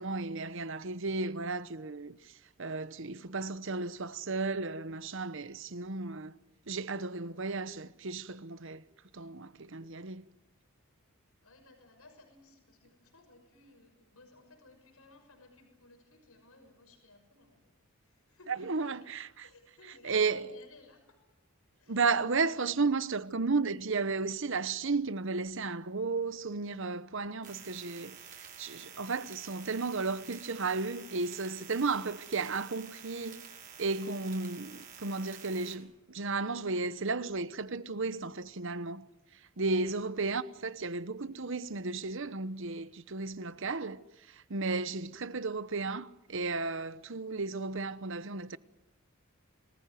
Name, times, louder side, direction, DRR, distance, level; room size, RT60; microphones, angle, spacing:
voice 1, 0.0-2.3 2.6-6.3 6.7-8.8 9.1-10.3 18.5-19.5 20.0-20.5 21.9-33.4 33.8-39.1 39.6-48.6, right 4 dB, 60° right, 1.0 m, -34 dB
voice 2, 11.4-17.7 18.0-19.0 19.4-21.2 21.7-22.0 39.6-40.0 44.8-45.1, left 2 dB, 85° left, 6.3 m, -59 dB
sound 1, 27.4-35.7, right 7 dB, 40° right, 5.6 m, -50 dB
27.5 x 20.0 x 9.4 m
head